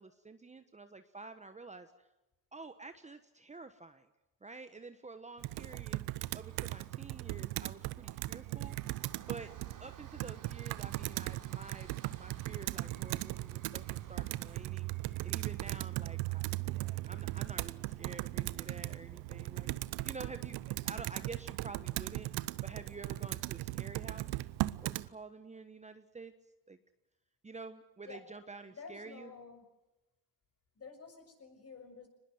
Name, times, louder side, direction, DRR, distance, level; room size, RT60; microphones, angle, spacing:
voice 1, 0.0-2.1 2.5-4.1 4.4-8.8 9.3-9.5 9.8-11.9 12.2-14.9 15.2-22.3 22.6-24.4 24.8-26.3 26.7-26.8 27.4-29.3, right 3 dB, 15° right, 9 dB, 1.3 m, -49 dB
Computer keyboard, 5.4-25.1, right 18 dB, 65° right, 0.9 m, -38 dB
sound 1, 6.4-20.5 20.9-21.0 21.3-21.4, right 7 dB, 50° right, 4.0 m, -60 dB
voice 2, 28.7-29.6 30.8-32.1, left 5 dB, 35° left, 5 dB, 6.9 m, -50 dB
24.0 x 20.5 x 7.9 m, 0.99 s
supercardioid pair, 90°, 41 cm